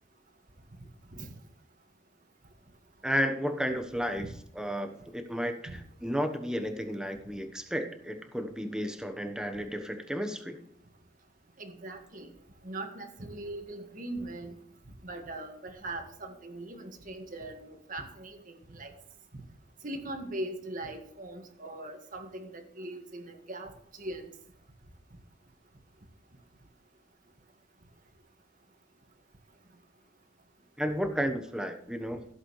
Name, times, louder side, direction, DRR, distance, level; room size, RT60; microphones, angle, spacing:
voice 1, 3.0-4.3 4.5-10.6 30.8-32.2, equal, 5° right, 6 dB, 1.1 m, -32 dB
voice 2, 11.6-12.3 12.6-14.5 15.0-18.9 19.8-23.7 24.0-24.3, right 1 dB, 50° right, 5 dB, 1.8 m, -40 dB
15.5 x 8.0 x 3.2 m, 0.71 s
head